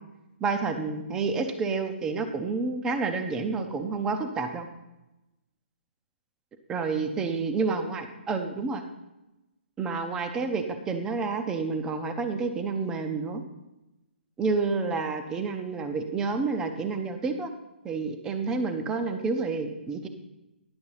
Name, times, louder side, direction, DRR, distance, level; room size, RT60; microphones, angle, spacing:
voice 1, 0.4-4.7 6.7-8.8 9.8-13.4 14.4-17.5 17.8-20.1, right 4 dB, 10° right, 7 dB, 0.5 m, -29 dB
10.5 x 5.8 x 5.6 m, 0.98 s
hypercardioid pair, 160°, 6 cm